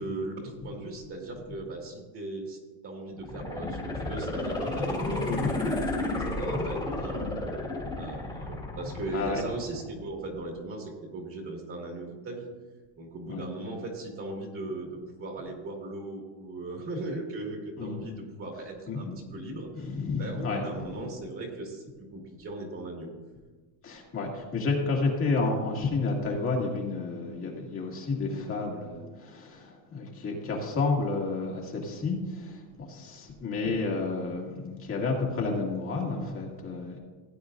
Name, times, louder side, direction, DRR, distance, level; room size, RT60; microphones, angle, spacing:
voice 1, 0.0-7.4 8.0-12.5 13.0-19.9 20.2-23.1, right 2 dB, 30° right, 0 dB, 2.2 m, -38 dB
sound 1, 3.2-10.2 10.6-10.7, left 2 dB, 10° left, 2.0 m, -32 dB
voice 2, 9.1-9.4 13.3-13.5 17.8-18.0 18.9-19.1 19.8-20.6 23.8-37.0, left 3 dB, 30° left, -1 dB, 2.1 m, -30 dB
16.0 x 8.6 x 2.6 m, 1.3 s
supercardioid pair, 135°, 42 cm